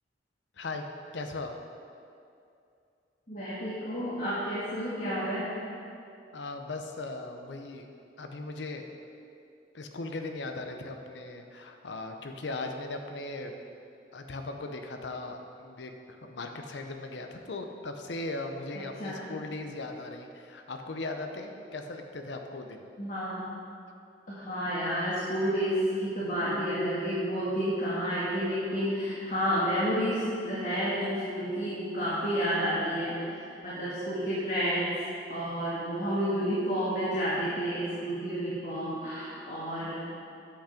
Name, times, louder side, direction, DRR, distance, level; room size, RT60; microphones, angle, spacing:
voice 1, 1.1-1.5 6.3-7.9 8.2-8.9 9.7-13.5 14.1-22.9, left 2 dB, 75° left, 5 dB, 0.7 m, -38 dB
voice 2, 3.3-5.5 19.0-19.2 23.0-23.5 24.3-33.3 33.6-34.9 35.3-39.9, equal, 45° left, -9 dB, 1.6 m, -30 dB
8.5 x 5.9 x 5.0 m, 2.5 s
head